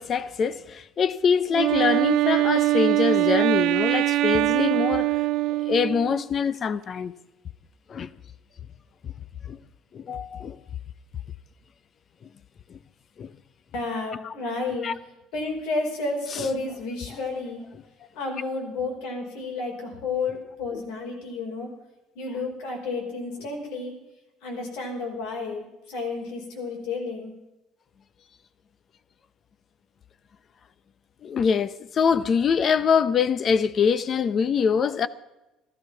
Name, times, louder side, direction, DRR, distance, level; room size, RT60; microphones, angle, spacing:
voice 1, 0.0-5.1 5.6-7.1 7.9-8.1 9.0-9.1 9.5-9.6 9.9-10.6 12.7-12.8 13.2-13.3 14.2-14.3 14.8-14.9 16.3-16.5 20.7-20.8 31.2-35.1, left 6 dB, 35° left, 0.7 m, -24 dB
Wind instrument woodwind instrument, 1.5-6.2, right 17 dB, 70° right, 0.5 m, -22 dB
voice 2, 13.7-14.9 15.3-17.6 18.1-21.7 22.1-24.0 24.4-27.3, left 3 dB, 90° left, 4.8 m, -31 dB
15.5 x 13.0 x 5.8 m
cardioid pair, 140°, 0 cm